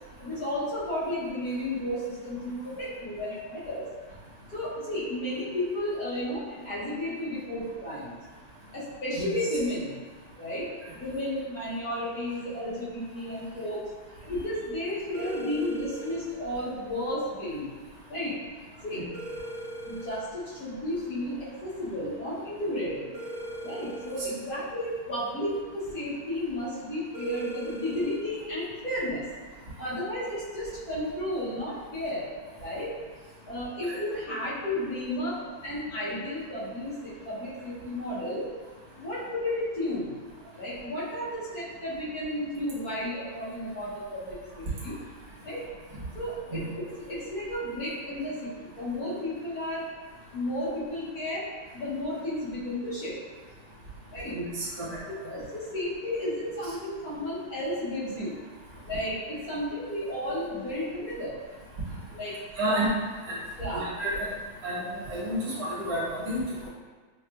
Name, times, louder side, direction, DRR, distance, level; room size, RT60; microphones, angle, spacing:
voice 1, 0.2-3.9 4.5-8.2 8.7-10.0 10.4-10.7 11.0-13.8 14.3-17.7 18.1-18.3 18.8-19.0 19.9-21.3 21.6-23.1 23.6-29.2 29.8-32.3 32.6-32.9 33.5-38.4 39.0-40.1 40.6-44.9 45.4-45.6 46.1-46.8 47.1-49.8 50.3-51.4 51.7-53.1 54.1-54.3 55.1-58.3 58.8-61.3 62.1-62.4 62.6-62.8 63.6-63.9, left 1 dB, 55° left, -9 dB, 1.2 m, -33 dB
sound 1, 15.1-16.2 19.1-20.2 23.1-24.2 27.1-28.2, right 1 dB, 65° right, 0.9 m, -39 dB
voice 2, 54.3-55.0 62.6-62.9 63.3-63.4 63.7-64.3 64.6-66.7, right 1 dB, 50° right, -8 dB, 1.5 m, -31 dB
5.5 x 2.3 x 2.3 m, 1.4 s
omnidirectional pair, 2.3 m